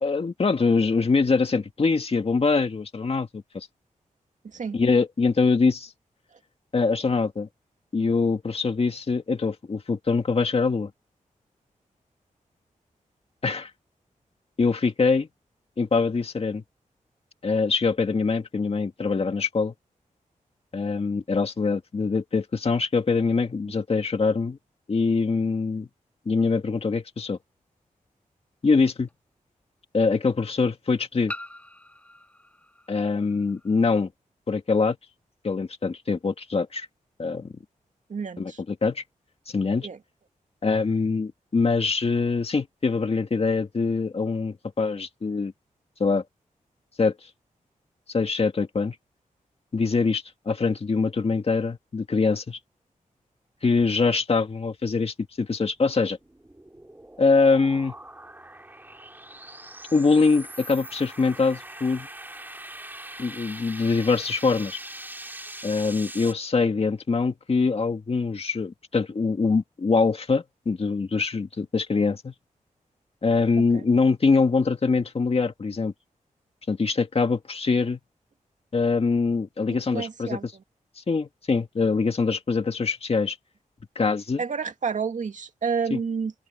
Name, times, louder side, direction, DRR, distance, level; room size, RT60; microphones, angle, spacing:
voice 1, 0.0-3.7 4.7-5.9 6.7-7.5 7.9-10.9 13.4-13.7 14.6-15.3 15.8-16.6 17.4-19.7 20.7-24.6 24.9-25.9 26.3-27.4 28.6-29.1 29.9-31.3 32.9-34.1 34.5-35.0 35.4-36.9 37.2-37.5 38.4-39.0 39.5-39.9 40.6-45.5 46.0-46.2 47.0-47.2 48.1-49.0 49.7-52.6 53.6-56.2 57.2-57.9 59.9-62.1 63.2-64.8 65.6-72.3 73.2-75.9 76.7-78.0 78.7-80.5 81.0-83.4 84.0-84.4 85.9-86.0, left 4 dB, 45° left, 2.1 m, -24 dB
voice 2, 4.4-4.8 38.1-38.6 39.8-40.0 73.6-73.8 79.9-80.5 84.4-86.3, right 5 dB, 60° right, 2.3 m, -30 dB
sound 1, 27.3-27.4 29.1-29.2 31.3-33.8, left 1 dB, 10° left, 7.8 m, -42 dB
sound 2, 55.8-66.3, right 1 dB, 15° right, 3.3 m, -42 dB
open air
wide cardioid pair, 110°, 14 cm